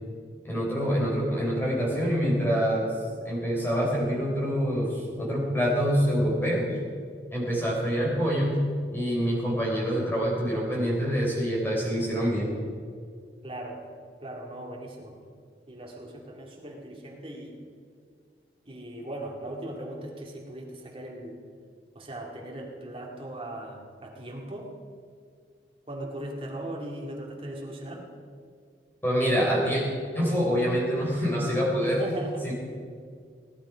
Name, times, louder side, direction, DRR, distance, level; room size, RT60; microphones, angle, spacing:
voice 1, 0.4-2.9 3.2-6.6 7.3-8.6 8.9-12.6 29.0-29.8 30.1-32.0 32.4-32.5, equal, 10° left, -4 dB, 4.1 m, -26 dB
voice 2, 13.4-13.8 14.2-15.2 15.7-17.6 18.7-21.4 21.9-24.7 25.9-28.1 31.8-32.5, right 1 dB, 30° right, -1 dB, 2.2 m, -38 dB
17.5 x 10.5 x 5.0 m, 2.1 s
head